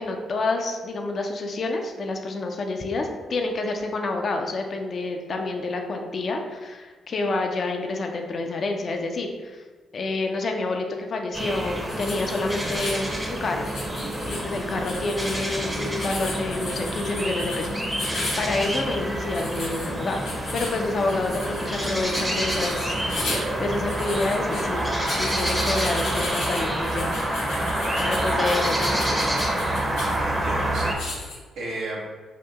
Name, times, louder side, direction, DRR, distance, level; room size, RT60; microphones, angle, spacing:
voice 1, 0.0-9.6 9.9-13.1 13.4-13.7 14.2-20.3 20.5-27.2 28.0-29.0, left 2 dB, 50° left, 3 dB, 0.5 m, -28 dB
sound 1, 11.3-30.9, right 1 dB, 15° right, 0.7 m, -27 dB
sound 2, 11.9-31.4, left 2 dB, 75° left, 0.9 m, -36 dB
voice 2, 30.0-32.0, right 1 dB, 70° right, -4 dB, 0.6 m, -34 dB
2.8 x 2.6 x 3.4 m, 1.4 s
hypercardioid pair, 40°, 0 cm